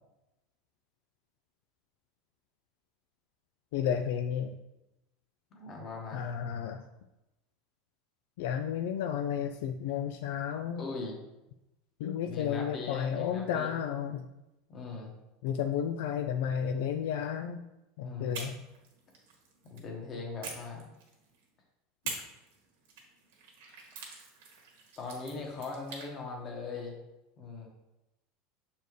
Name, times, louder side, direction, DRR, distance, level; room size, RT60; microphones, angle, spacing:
voice 1, 3.7-4.6 6.1-6.8 8.4-10.8 12.0-14.3 15.4-17.6 18.0-18.6, left 8 dB, 75° left, 5 dB, 0.4 m, -32 dB
voice 2, 5.5-6.3 10.7-11.2 12.2-13.7 14.7-15.1 18.0-18.4 19.6-20.9 25.0-26.9 27.4-27.7, left 4 dB, 30° left, 0 dB, 1.3 m, -40 dB
sound 1, 18.3-19.9 20.4-21.4 22.0-26.1, right 4 dB, 85° right, 1.6 m, -45 dB
6.8 x 4.3 x 3.2 m, 0.95 s
supercardioid pair, 155°, 0 cm